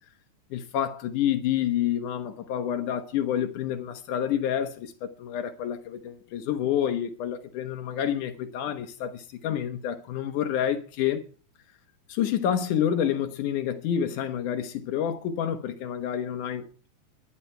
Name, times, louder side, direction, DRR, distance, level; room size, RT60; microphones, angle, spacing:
voice 1, 0.5-11.2 12.1-16.6, left 9 dB, 85° left, 2.7 m, -28 dB
23.0 x 10.0 x 4.5 m
omnidirectional pair, 3.5 m